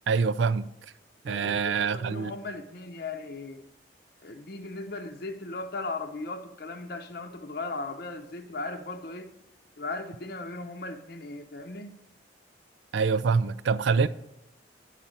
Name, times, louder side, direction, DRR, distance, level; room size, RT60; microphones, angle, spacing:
voice 1, 0.1-0.7 1.2-2.3 12.9-14.1, right 5 dB, 80° right, 0.4 m, -25 dB
voice 2, 1.3-3.6 4.2-9.3 9.8-12.0, left 3 dB, 55° left, 0.7 m, -37 dB
10.5 x 4.1 x 7.3 m
head